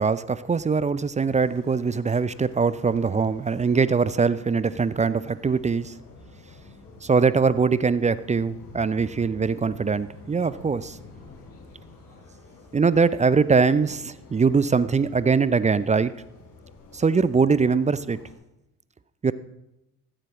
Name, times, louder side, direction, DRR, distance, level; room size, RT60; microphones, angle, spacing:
voice 1, 0.0-5.9 7.0-11.0 12.7-16.1 16.9-18.2 19.2-19.3, right 5 dB, 15° right, 16 dB, 0.5 m, -22 dB
sound 1, 1.2-18.3, left 3 dB, 45° left, 4.9 m, -49 dB
16.5 x 14.0 x 3.1 m, 0.88 s
hypercardioid pair, 55°, 46 cm